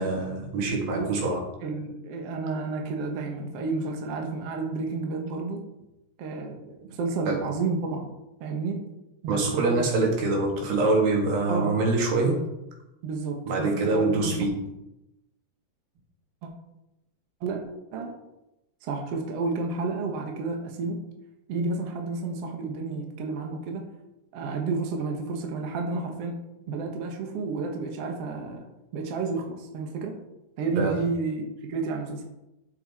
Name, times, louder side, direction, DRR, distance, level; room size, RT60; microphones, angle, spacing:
voice 1, 0.0-1.4 7.3-7.4 9.3-12.4 13.5-14.5 30.8-31.0, right 3 dB, 80° right, 0 dB, 3.8 m, -25 dB
voice 2, 1.6-5.6 6.2-8.1 8.4-8.8 9.2-9.8 11.5-11.8 13.0-14.3 16.4-16.5 17.4-17.6 17.9-18.1 18.8-21.0 21.5-23.8 24.3-26.4 26.7-28.7 28.9-30.1 30.6-32.2, right 3 dB, 55° right, 2 dB, 1.9 m, -31 dB
10.5 x 7.4 x 4.3 m, 0.91 s
omnidirectional pair, 4.1 m